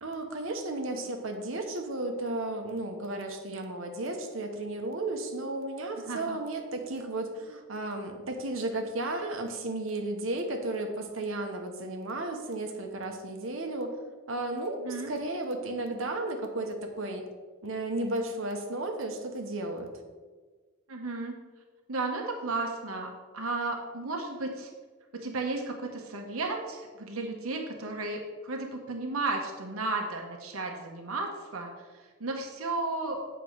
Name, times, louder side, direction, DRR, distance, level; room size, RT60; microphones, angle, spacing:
voice 1, 0.0-13.9 14.3-17.2 17.6-19.9, right 2 dB, 65° right, 4 dB, 1.2 m, -34 dB
voice 2, 6.0-6.4 14.8-15.1 20.9-21.3 21.9-24.7 25.1-33.2, right 3 dB, 90° right, 2 dB, 1.1 m, -34 dB
8.3 x 4.6 x 6.4 m, 1.4 s
head